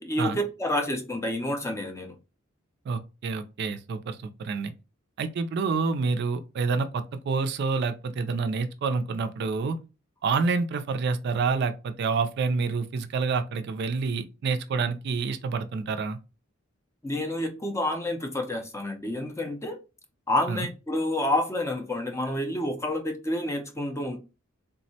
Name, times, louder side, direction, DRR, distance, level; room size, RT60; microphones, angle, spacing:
voice 1, 0.0-2.2 17.0-19.8 20.3-24.2, left 1 dB, 15° left, 0.4 m, -29 dB
voice 2, 2.9-4.7 5.2-9.8 10.2-16.2 20.5-20.7, right 4 dB, 55° right, 0.3 m, -28 dB
3.5 x 2.0 x 2.7 m
head